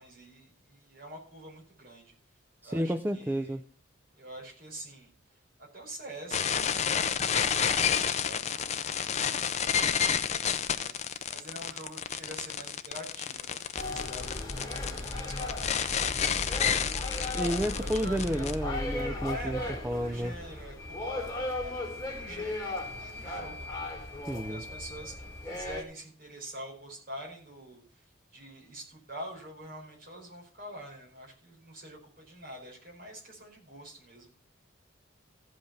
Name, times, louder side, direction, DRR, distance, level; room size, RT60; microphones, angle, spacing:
voice 1, 0.0-2.1 2.6-3.6 4.1-18.5 19.3-34.3, right 1 dB, 45° right, 4.9 m, -46 dB
voice 2, 2.6-3.6 17.3-19.6 19.8-20.3 24.3-24.6, equal, 10° right, 0.4 m, -31 dB
sound 1, 6.3-18.5, left 7 dB, 35° left, 0.6 m, -30 dB
sound 2, 13.7-25.8, left 2 dB, 15° left, 2.3 m, -36 dB
sound 3, 20.8-25.8, left 3 dB, 55° left, 1.8 m, -46 dB
15.0 x 5.4 x 5.7 m
head